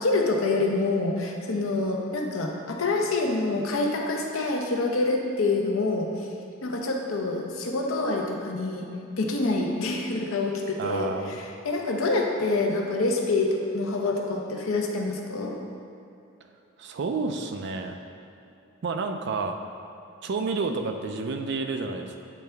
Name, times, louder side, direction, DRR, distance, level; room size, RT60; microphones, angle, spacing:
voice 1, 0.0-6.1 6.6-8.9 9.2-15.5, left 2 dB, 80° left, 1 dB, 0.7 m, -26 dB
voice 2, 10.8-11.4 16.8-17.9 18.8-19.6 20.2-22.2, right 4 dB, 55° right, 5 dB, 0.4 m, -30 dB
8.3 x 3.4 x 3.4 m, 2.7 s
head